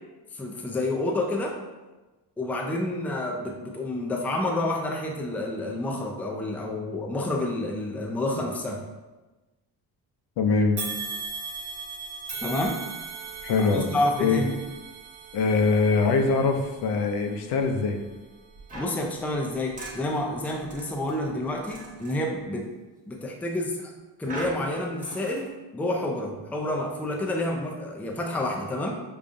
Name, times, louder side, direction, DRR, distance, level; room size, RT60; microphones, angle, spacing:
voice 1, 0.3-1.6 2.4-8.8 12.4-12.8 13.6-14.5 18.8-22.7 23.1-23.9 24.2-25.5 25.7-28.9, left 1 dB, 5° left, 0 dB, 0.3 m, -29 dB
voice 2, 10.4-10.8 13.4-13.9 14.2-14.4 15.3-18.0, left 4 dB, 80° left, 4 dB, 0.6 m, -23 dB
sound 1, 10.8-20.1 20.6-20.8 21.7-21.8, right 4 dB, 70° right, 1.0 m, -39 dB
sound 2, 18.7-22.3 24.2-25.5, right 1 dB, 20° right, 1.0 m, -41 dB
4.9 x 2.3 x 2.5 m, 1.1 s
cardioid pair, 110°, 38 cm